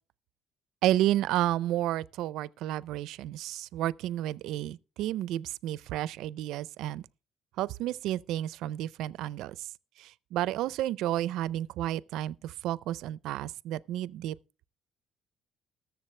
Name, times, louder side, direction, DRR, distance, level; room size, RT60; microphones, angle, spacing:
voice 1, 0.8-7.1 7.6-9.6 10.0-14.4, right 13 dB, 80° right, 0.4 m, -31 dB
20.5 x 7.2 x 3.2 m
cardioid pair, 130°, 0 cm